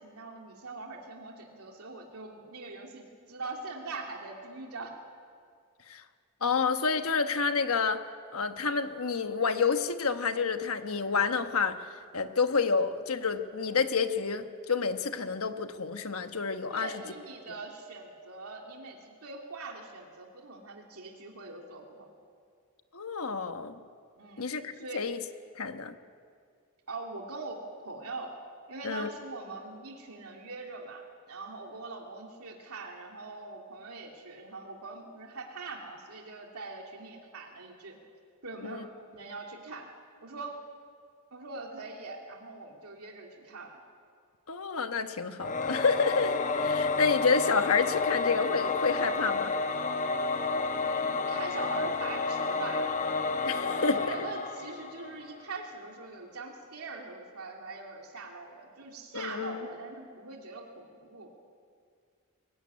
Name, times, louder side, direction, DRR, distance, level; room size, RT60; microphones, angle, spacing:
voice 1, 0.0-5.0 16.7-22.1 24.2-25.0 26.9-28.3 28.7-38.0 38.4-39.9 40.2-40.6 41.3-43.8 50.7-52.9 53.4-61.3, right 3 dB, 90° right, 0 dB, 2.7 m, -42 dB
voice 2, 6.4-8.0 8.3-11.8 12.1-16.9 22.9-23.8 24.4-25.2 25.5-25.9 28.8-29.1 38.6-38.9 44.5-49.5 53.4-54.1 59.1-59.6, left 5 dB, 75° left, 8 dB, 1.2 m, -29 dB
Singing / Musical instrument, 45.4-55.4, left 4 dB, 35° left, 0.9 m, -30 dB
22.5 x 16.5 x 9.6 m, 2.2 s
head